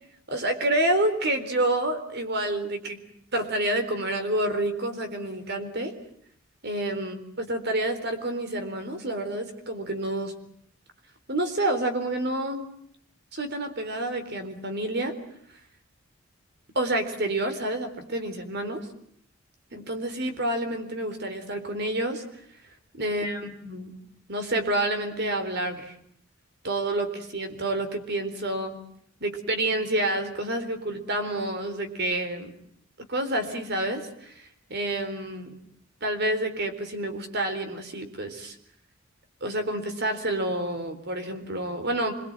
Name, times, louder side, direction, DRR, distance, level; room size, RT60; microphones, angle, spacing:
voice 1, 0.3-3.0 3.3-5.9 6.6-10.3 11.3-12.6 13.3-15.1 16.7-18.8 19.7-22.2 23.0-23.9 24.3-26.0 26.6-28.8 29.2-32.5 33.1-35.5 36.0-38.6 39.4-42.1, right 1 dB, 55° right, 7 dB, 4.0 m, -28 dB
26.5 x 22.5 x 8.9 m, 0.68 s
head